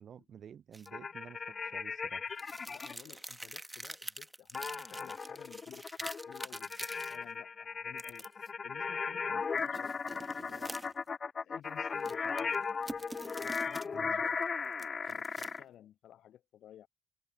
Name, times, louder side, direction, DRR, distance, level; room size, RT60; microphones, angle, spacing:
voice 1, 0.0-2.3 13.9-14.2, right 8 dB, 50° right, 0.7 m, -51 dB
sound 1, 0.7-0.9 2.4-7.2 8.0-8.5 9.6-11.1 11.9-13.9 14.3-15.7, right 1 dB, 15° right, 1.8 m, -46 dB
sound 2, 0.9-2.9 4.5-15.6, left 5 dB, 40° left, 0.4 m, -37 dB
voice 2, 2.7-10.8 11.4-12.7 13.4-14.5 15.0-16.9, left 11 dB, 55° left, 0.9 m, -56 dB
figure-of-eight pair, 40°, 0 cm